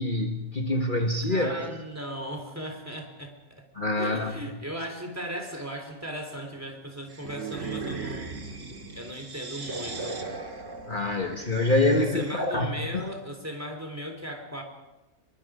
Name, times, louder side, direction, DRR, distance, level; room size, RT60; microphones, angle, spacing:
voice 1, 0.0-1.5 3.7-4.3 10.9-13.1, left 2 dB, 40° left, 2 dB, 1.7 m, -26 dB
voice 2, 1.3-3.7 3.9-8.4 8.9-10.2 12.0-14.6, equal, 10° right, 3 dB, 3.7 m, -37 dB
sound 1, 7.1-12.6, right 4 dB, 65° right, 2.5 m, -38 dB
24.5 x 22.5 x 5.1 m, 1.0 s
omnidirectional pair, 1.3 m